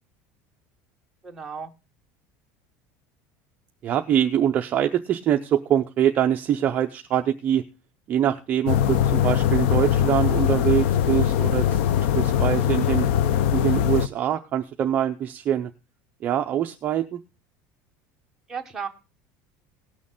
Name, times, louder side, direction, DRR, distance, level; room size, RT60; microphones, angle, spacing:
voice 1, 1.2-1.7 18.5-18.9, right 6 dB, 5° right, 1.1 m, -34 dB
voice 2, 3.8-7.7 8.1-11.8 12.1-13.1 13.5-15.7 16.2-17.2, right 10 dB, 25° right, 0.5 m, -24 dB
sound 1, 8.7-14.1, left 10 dB, 85° left, 0.6 m, -21 dB
18.5 x 6.3 x 3.7 m
cardioid pair, 180°, 7 cm